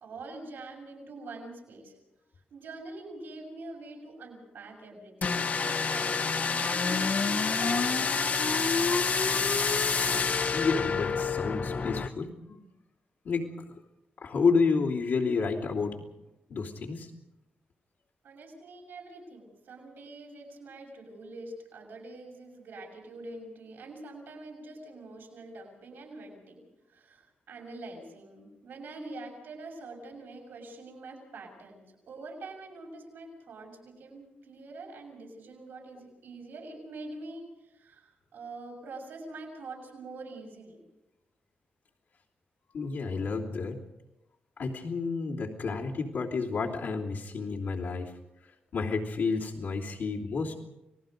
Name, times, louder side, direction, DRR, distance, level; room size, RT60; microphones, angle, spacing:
voice 1, 0.0-1.9 2.5-9.1 18.2-40.8, right 2 dB, 85° right, 0 dB, 6.4 m, -45 dB
sound 1, 5.2-12.1, left 5 dB, 50° left, 1.0 m, -27 dB
voice 2, 10.5-12.6 13.2-13.7 14.2-16.0 16.5-17.1 42.7-43.8 44.6-48.1 48.7-50.5, left 4 dB, 80° left, -5 dB, 3.0 m, -30 dB
29.5 x 19.5 x 5.3 m, 0.95 s
cardioid pair, 90°, 3 cm